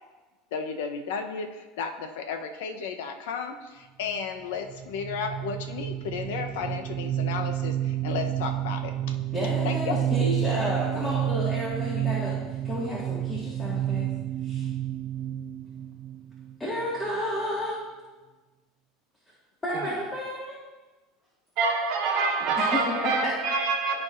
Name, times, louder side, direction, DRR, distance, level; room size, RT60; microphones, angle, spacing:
voice 1, 0.5-9.1 9.6-10.0, left 6 dB, 80° left, 6 dB, 0.7 m, -33 dB
sound 1, 4.7-17.1, right 12 dB, 35° right, 0.4 m, -30 dB
voice 2, 9.3-12.4 12.6-14.1 14.4-14.7 16.6-17.8 19.6-20.6 22.6-23.4, left 1 dB, 15° left, -6 dB, 1.8 m, -31 dB
voice 3, 21.6-24.0, right 4 dB, 55° right, -4 dB, 1.0 m, -26 dB
13.0 x 4.6 x 2.5 m, 1.2 s
supercardioid pair, 110°, 0 cm